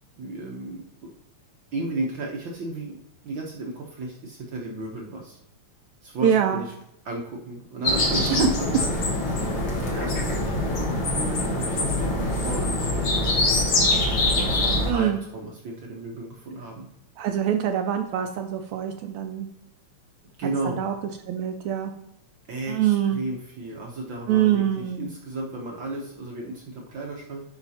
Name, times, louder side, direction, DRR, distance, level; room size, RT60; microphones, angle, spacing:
voice 1, 0.2-1.1 1.7-5.4 6.0-6.7 7.0-8.9 9.8-12.1 12.4-13.4 14.4-16.9 20.4-20.8 22.5-27.4, right 2 dB, 65° right, -1 dB, 1.2 m, -34 dB
voice 2, 6.2-6.6 8.3-8.5 14.9-15.2 17.2-19.5 20.7-20.9 21.3-21.9 22.7-23.2 24.3-25.1, right 10 dB, 80° right, 4 dB, 1.8 m, -24 dB
sound 1, 7.8-14.9, left 1 dB, 50° left, 1.8 m, -24 dB
11.0 x 4.9 x 2.8 m, 0.83 s
omnidirectional pair, 3.4 m